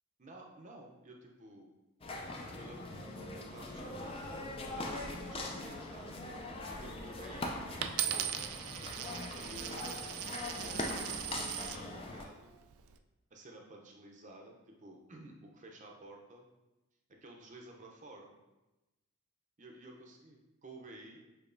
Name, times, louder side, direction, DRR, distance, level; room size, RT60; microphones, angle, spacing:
voice 1, 0.2-1.7 2.6-3.0 3.5-6.2 6.7-8.0 9.3-10.0 10.6-11.2 11.5-12.6 13.3-16.5 17.1-18.4 19.6-21.2, right 1 dB, 35° right, 0 dB, 0.6 m, -53 dB
sound 1, 2.0-12.3, left 2 dB, 25° left, 0.4 m, -41 dB
Coin (dropping), 7.8-11.8 12.5-13.0, right 10 dB, 85° right, 0.3 m, -39 dB
6.7 x 2.9 x 2.6 m, 1.0 s
head